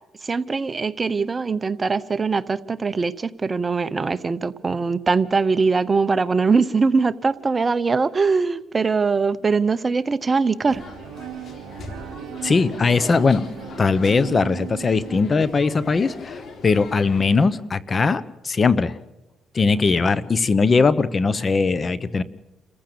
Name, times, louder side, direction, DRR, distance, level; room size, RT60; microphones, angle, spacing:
voice 1, 0.2-10.8, right 4 dB, 30° right, 14 dB, 0.9 m, -22 dB
Bowed string instrument, 10.6-15.5, right 12 dB, 80° right, 0.9 m, -38 dB
sound 1, 10.7-17.5, left 3 dB, 55° left, 3.8 m, -40 dB
voice 2, 12.4-13.5 13.8-19.0 19.5-22.2, left 4 dB, 35° left, 18 dB, 1.0 m, -20 dB
28.5 x 15.0 x 6.9 m, 1.0 s
cardioid pair, 90°, 0 cm